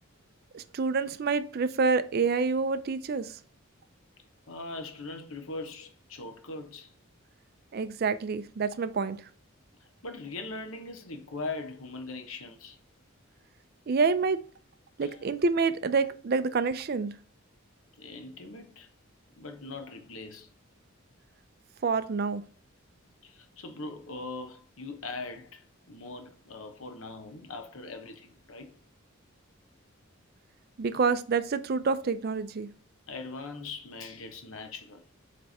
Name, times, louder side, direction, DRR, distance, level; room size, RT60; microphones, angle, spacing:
voice 1, 0.5-3.3 7.7-9.2 13.9-14.4 15.0-17.1 21.8-22.4 30.8-32.7, right 4 dB, 45° right, 0.4 m, -27 dB
voice 2, 4.5-6.9 10.0-12.8 15.0-15.3 18.0-18.9 19.3-20.5 23.2-28.7 33.1-35.0, left 3 dB, 70° left, 1.1 m, -41 dB
7.7 x 3.4 x 4.1 m
head